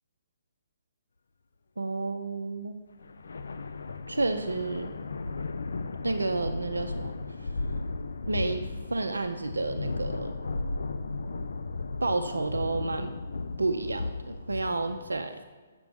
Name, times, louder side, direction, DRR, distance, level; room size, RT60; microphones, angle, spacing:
voice 1, 1.8-2.8 4.1-4.9 6.0-7.1 7.4-7.5 8.3-10.3 12.0-13.1 13.6-15.4, right 3 dB, 85° right, 6 dB, 0.4 m, -30 dB
sound 1, 3.0-15.2, left 3 dB, 75° left, 0.3 m, -35 dB
6.9 x 5.9 x 3.4 m, 1.4 s
figure-of-eight pair, 135°, 0 cm